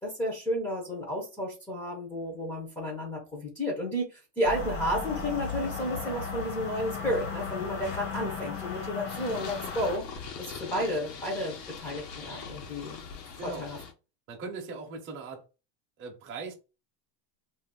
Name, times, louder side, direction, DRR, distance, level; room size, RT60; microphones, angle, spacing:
voice 1, 0.0-10.1 10.4-13.0 13.4-13.8, equal, 5° left, 0.7 m, -32 dB
sound 1, 4.4-10.0, left 5 dB, 60° left, 1.4 m, -36 dB
Purr, 9.1-13.9, left 6 dB, 80° left, 1.1 m, -42 dB
voice 2, 13.4-13.7 14.3-15.4 16.0-16.5, right 4 dB, 25° right, 0.8 m, -39 dB
2.7 x 2.5 x 3.7 m
supercardioid pair, 165°, 49 cm